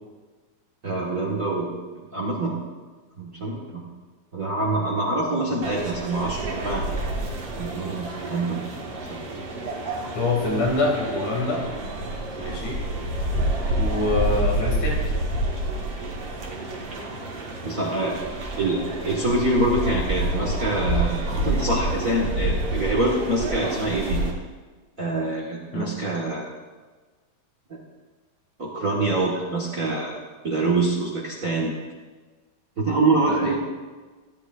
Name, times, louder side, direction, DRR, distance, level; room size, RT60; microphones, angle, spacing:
voice 1, 0.8-1.7 2.1-2.6 3.2-3.8 4.3-6.8 7.6-8.6 9.1-9.2 17.6-18.1 18.6-24.2 25.0-26.5 27.7-27.8 28.6-30.2 30.4-31.7 32.8-33.6, right 2 dB, 35° right, -3 dB, 1.5 m, -25 dB
sound 1, 5.6-24.3, right 1 dB, 55° right, 2.6 m, -28 dB
voice 2, 10.1-11.6 12.4-12.8 13.8-15.0 25.7-25.9 33.3-33.6, left 2 dB, 75° left, -3 dB, 4.2 m, -25 dB
17.5 x 11.0 x 2.5 m, 1.3 s
omnidirectional pair, 3.3 m